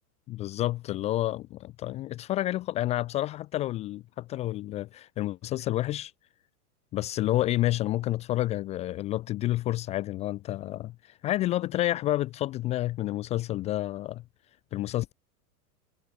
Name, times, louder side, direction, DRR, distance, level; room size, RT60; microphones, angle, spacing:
voice 1, 0.3-6.1 6.9-10.9 11.2-14.2 14.7-15.1, left 15 dB, 15° left, 0.4 m, -29 dB
supercardioid pair, 150°, 45 cm